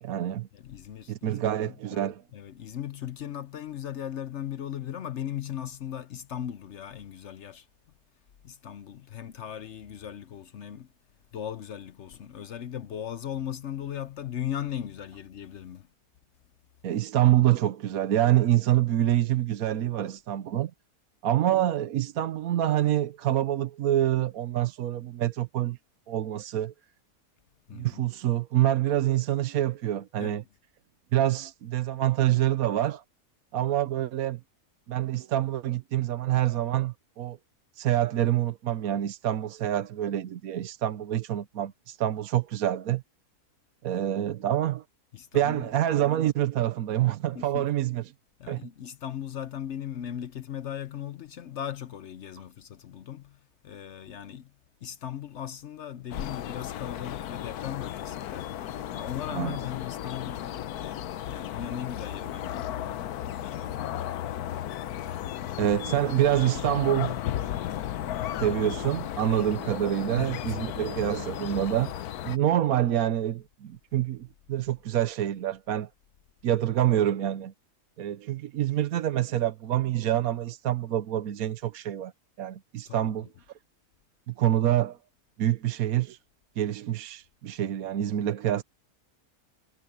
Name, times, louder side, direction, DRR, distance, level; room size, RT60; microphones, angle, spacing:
voice 1, 0.0-0.5 1.1-2.2 16.8-20.7 21.2-25.8 26.1-26.7 27.7-30.4 31.1-33.0 33.5-34.4 34.9-37.4 37.8-43.0 43.8-44.8 45.3-48.0 48.5-48.6 59.3-59.6 65.6-67.2 68.4-75.9 76.4-77.5 78.0-82.1 82.4-83.3 84.3-85.0 85.4-86.2 86.6-88.6, right 12 dB, 70° right, 1.2 m, -26 dB
voice 2, 0.5-1.5 1.9-7.7 8.4-10.9 11.3-15.9 27.7-28.0 30.2-30.4 45.1-45.7 47.3-47.7 48.4-53.4 53.6-54.5 54.8-58.5 58.9-62.7 63.3-64.0 69.3-69.6 70.2-70.8 82.9-83.3, left 10 dB, 60° left, 0.9 m, -38 dB
sound 1, 56.1-72.4, left 11 dB, 75° left, 1.2 m, -35 dB
omnidirectional pair, 1.6 m